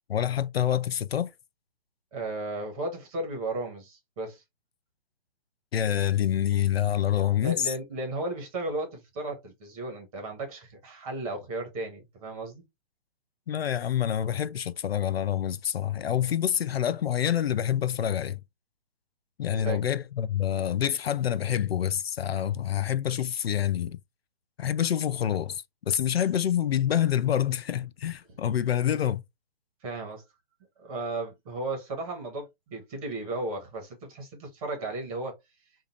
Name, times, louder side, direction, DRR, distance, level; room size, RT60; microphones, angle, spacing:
voice 1, 0.1-1.3 5.7-7.7 13.5-18.4 19.4-24.0 24.6-29.2, left 10 dB, 75° left, 0.5 m, -27 dB
voice 2, 2.1-4.4 7.4-12.6 19.4-19.8 29.8-30.2 30.8-35.4, right 2 dB, 35° right, 1.7 m, -35 dB
3.6 x 2.8 x 2.8 m
figure-of-eight pair, 135°, 31 cm